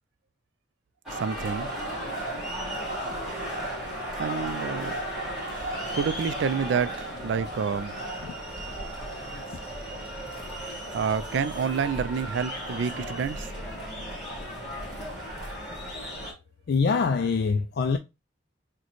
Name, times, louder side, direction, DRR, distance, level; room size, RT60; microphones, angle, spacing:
sound 1, 1.1-16.3, right 1 dB, 5° right, 1.9 m, -35 dB
voice 1, 1.1-1.7 4.1-5.0 5.9-7.9 10.9-13.5, right 6 dB, 75° right, 0.3 m, -28 dB
voice 2, 16.7-18.0, left 5 dB, 55° left, 0.3 m, -24 dB
6.3 x 2.2 x 3.0 m
head